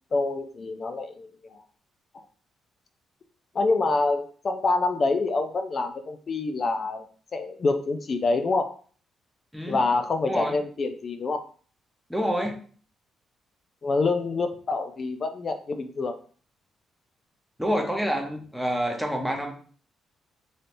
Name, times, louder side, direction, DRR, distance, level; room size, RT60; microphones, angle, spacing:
voice 1, 0.1-1.6 2.1-2.2 3.5-7.0 7.3-8.8 9.7-11.4 13.8-16.2, left 3 dB, 45° left, 7 dB, 0.3 m, -26 dB
voice 2, 12.1-12.6 17.6-19.5, equal, ahead, 1 dB, 0.7 m, -27 dB
3.2 x 2.7 x 2.6 m, 0.43 s
cardioid pair, 90°, 0 cm